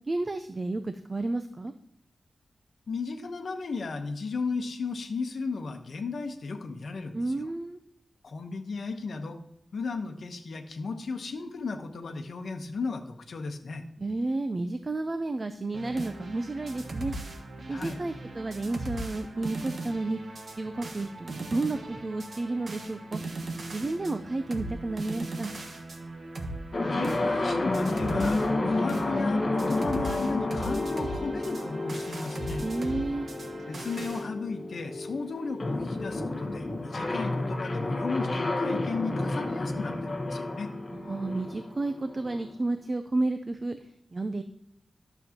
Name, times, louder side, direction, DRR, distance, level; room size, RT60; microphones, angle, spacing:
voice 1, 0.1-1.7 7.1-7.8 14.0-17.1 17.7-20.2 20.6-23.2 23.7-25.6 32.6-33.3 40.9-43.8 44.1-44.4, right 2 dB, 30° right, 8 dB, 0.5 m, -31 dB
voice 2, 2.9-7.5 8.2-9.4 9.7-13.8 17.7-18.0 26.8-32.7 33.7-40.7, left 4 dB, 65° left, 5 dB, 1.0 m, -35 dB
sound 1, 15.7-34.3, right 2 dB, 55° right, 1.2 m, -39 dB
sound 2, 26.7-42.5, left 2 dB, 30° left, 1.2 m, -31 dB
11.5 x 7.0 x 2.9 m, 0.78 s
wide cardioid pair, 160°, 0 cm